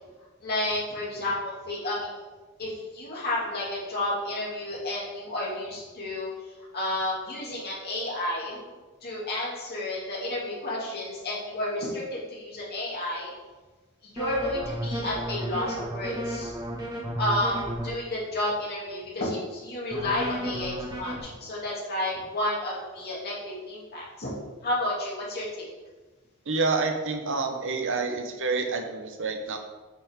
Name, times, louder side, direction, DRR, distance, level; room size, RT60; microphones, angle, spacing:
voice 1, 0.4-2.2 2.6-6.3 6.7-8.6 9.0-13.3 14.0-16.5 17.2-24.3 24.6-25.7, left 1 dB, 50° left, -5 dB, 2.6 m, -31 dB
sound 1, 14.2-17.9 19.9-21.2, equal, 20° right, 1.6 m, -33 dB
voice 2, 26.5-29.6, right 4 dB, 60° right, 4 dB, 1.0 m, -28 dB
8.2 x 6.0 x 3.7 m, 1.3 s
head